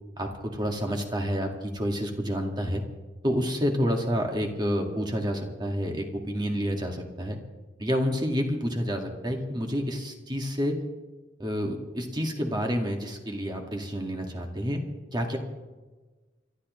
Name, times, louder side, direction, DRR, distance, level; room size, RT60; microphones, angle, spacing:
voice 1, 0.2-2.8 3.2-7.4 7.8-10.8 11.4-14.8 15.1-15.4, equal, 25° right, 2 dB, 2.0 m, -29 dB
29.5 x 13.0 x 3.2 m, 1.3 s
head